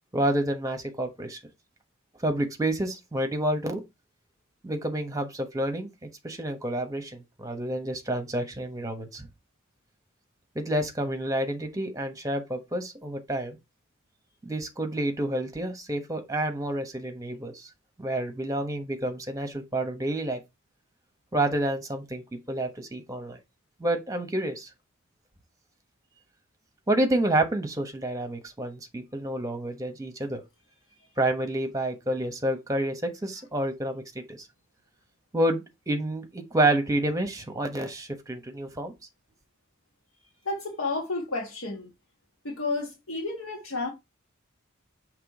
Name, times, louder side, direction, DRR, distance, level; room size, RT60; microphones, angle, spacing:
voice 1, 0.1-1.4 2.2-3.8 4.6-9.3 10.5-13.6 14.4-17.7 18.0-20.4 21.3-23.4 23.8-24.7 26.9-30.4 31.2-34.5 35.3-38.9, right 1 dB, 15° right, 1.2 m, -29 dB
voice 2, 40.4-41.9 42.4-43.9, left 3 dB, 70° left, 1.6 m, -31 dB
6.0 x 3.2 x 4.8 m
head